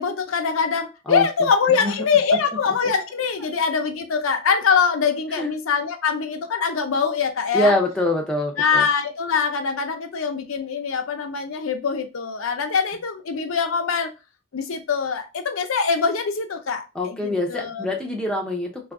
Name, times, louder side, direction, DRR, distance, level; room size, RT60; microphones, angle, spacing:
voice 1, 0.0-7.8 8.6-14.1 14.5-17.9, left 5 dB, 80° left, 0.5 m, -23 dB
voice 2, 7.5-8.8 16.9-18.9, left 1 dB, 5° left, 0.5 m, -24 dB
2.7 x 2.4 x 3.5 m
head